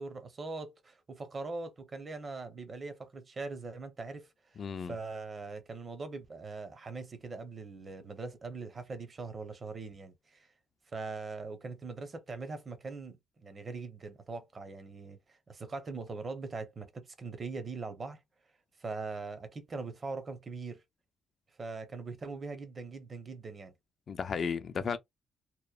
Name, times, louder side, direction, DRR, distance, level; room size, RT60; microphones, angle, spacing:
voice 1, 0.0-10.5 10.9-18.2 18.8-20.8 21.6-23.7, right 3 dB, 35° right, 0.7 m, -41 dB
voice 2, 4.6-4.9 24.1-25.0, left 6 dB, 50° left, 0.3 m, -34 dB
2.9 x 2.1 x 2.3 m
cardioid pair, 90°, 0 cm